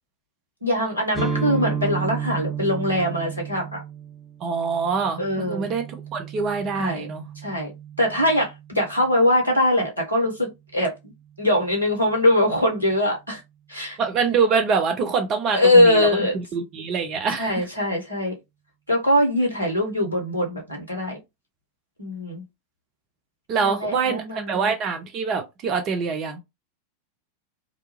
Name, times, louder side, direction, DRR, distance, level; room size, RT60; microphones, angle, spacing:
voice 1, 0.6-3.8 5.2-5.7 6.7-7.1 7.4-7.7 8.0-11.1 11.4-13.4 13.7-14.0 15.5-16.4 17.4-18.3 18.9-21.2 22.0-22.4 23.6-24.7, left 1 dB, 85° right, 1.2 m, -22 dB
sound 1, 1.1-8.9, right 6 dB, 5° right, 1.0 m, -32 dB
voice 2, 4.4-5.8 6.1-7.2 14.0-16.1 16.5-17.6 23.5-26.4, right 5 dB, 35° right, 0.6 m, -24 dB
2.5 x 2.3 x 3.0 m
figure-of-eight pair, 90°, 0 cm